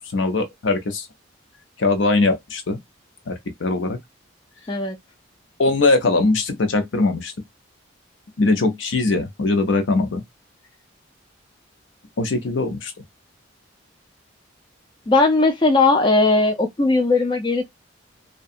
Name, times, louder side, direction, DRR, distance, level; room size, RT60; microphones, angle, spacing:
voice 1, 0.1-1.1 1.8-2.8 3.3-4.0 5.6-7.3 8.4-10.2 12.2-12.9, left 3 dB, 70° left, 0.6 m, -21 dB
voice 2, 15.1-17.6, left 3 dB, 25° left, 0.4 m, -18 dB
2.7 x 2.2 x 2.4 m
head